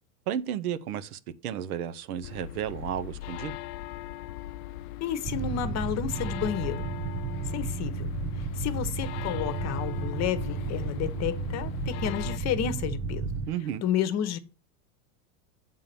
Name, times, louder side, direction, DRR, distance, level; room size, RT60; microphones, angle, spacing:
voice 1, 0.3-3.6 13.5-13.8, right 10 dB, 85° right, 0.8 m, -33 dB
sound 1, 2.2-12.4, left 14 dB, 70° left, 0.5 m, -39 dB
voice 2, 5.0-6.9 7.5-13.2 13.8-14.4, left 10 dB, 40° left, 0.9 m, -31 dB
sound 2, 5.2-13.5, right 4 dB, 25° right, 0.6 m, -33 dB
7.4 x 3.8 x 6.6 m
supercardioid pair, 120°, 43 cm